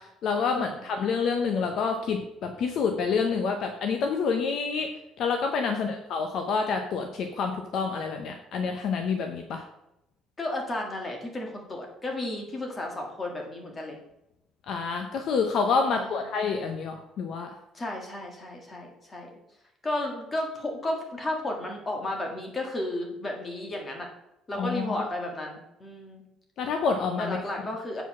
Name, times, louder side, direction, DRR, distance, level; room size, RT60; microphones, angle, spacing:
voice 1, 0.2-4.9 5.2-9.6 14.7-17.5 24.6-25.1 26.6-27.4, left 5 dB, 50° left, 5 dB, 0.8 m, -28 dB
voice 2, 10.4-14.0 15.9-16.2 17.7-19.3 19.8-24.1 24.5-26.2 27.2-28.0, left 1 dB, 20° left, 1 dB, 1.7 m, -33 dB
8.0 x 4.8 x 6.0 m, 0.83 s
cardioid pair, 165°, 0 cm